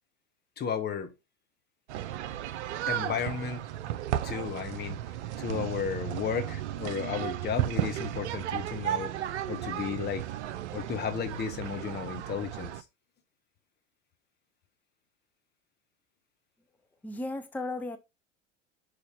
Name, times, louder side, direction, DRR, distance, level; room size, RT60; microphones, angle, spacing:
voice 1, 0.6-1.1 2.9-3.6 4.2-5.0 5.4-9.1 9.5-10.3 10.7-12.8, left 7 dB, 25° left, 1.3 m, -33 dB
sound 1, 1.9-12.8, right 12 dB, 60° right, 0.7 m, -34 dB
voice 2, 17.0-18.0, left 2 dB, 5° left, 0.7 m, -35 dB
5.7 x 4.9 x 4.5 m
figure-of-eight pair, 80°, 39 cm